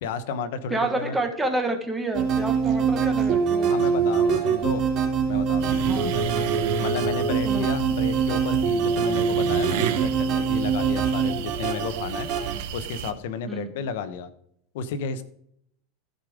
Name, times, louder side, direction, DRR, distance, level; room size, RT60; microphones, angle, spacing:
voice 1, 0.0-1.2 3.7-4.8 5.3-6.3 6.8-12.3 12.7-14.3 14.7-15.2, left 5 dB, 65° left, 12 dB, 0.9 m, -32 dB
voice 2, 0.7-3.8 5.8-6.1 7.4-7.6 13.5-13.7, right 2 dB, 5° right, 5 dB, 1.3 m, -28 dB
sound 1, 2.1-12.5, right 6 dB, 35° right, 3.0 m, -24 dB
sound 2, 5.6-13.1, right 10 dB, 55° right, 1.0 m, -33 dB
15.0 x 5.1 x 5.0 m, 0.69 s
supercardioid pair, 160°, 0 cm